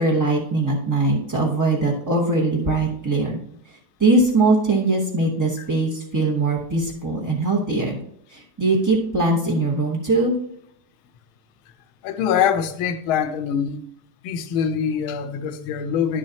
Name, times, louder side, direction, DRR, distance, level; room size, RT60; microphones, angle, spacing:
voice 1, 0.0-3.4 4.0-8.0 8.3-10.3, right 2 dB, 20° right, 0.4 m, -21 dB
voice 2, 12.0-13.8 14.2-16.2, left 8 dB, 80° left, 1.5 m, -24 dB
10.0 x 7.4 x 2.8 m
omnidirectional pair, 2.3 m